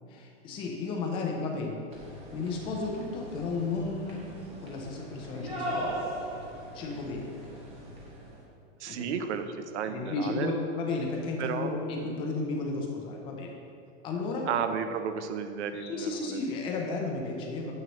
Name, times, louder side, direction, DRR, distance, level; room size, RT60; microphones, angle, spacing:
voice 1, 0.1-1.8 2.3-4.2 4.6-6.1 6.7-7.3 8.9-9.2 9.9-13.5 14.0-14.5 15.7-17.7, left 3 dB, 15° left, 0 dB, 0.5 m, -33 dB
sound 1, 1.9-8.4, right 1 dB, 15° right, 0.9 m, -39 dB
voice 2, 8.8-10.5 11.4-11.7 14.5-16.4 17.6-17.7, right 7 dB, 70° right, 8 dB, 0.7 m, -33 dB
9.2 x 6.9 x 3.0 m, 2.5 s
supercardioid pair, 170°, 36 cm